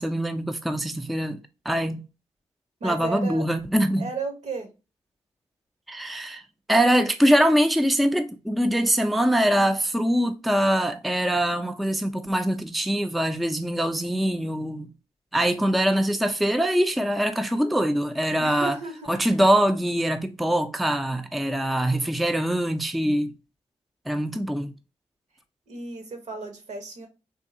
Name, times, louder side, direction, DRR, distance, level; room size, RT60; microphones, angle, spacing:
voice 1, 0.0-2.0 2.8-4.1 5.9-6.4 6.7-14.9 15.3-18.8 19.1-23.3 24.1-24.7, equal, ahead, 0.4 m, -23 dB
voice 2, 2.8-3.4 4.0-4.7 18.4-19.1 25.7-27.1, right 4 dB, 70° right, 1.0 m, -34 dB
3.6 x 2.3 x 2.6 m
cardioid pair, 60°, 12 cm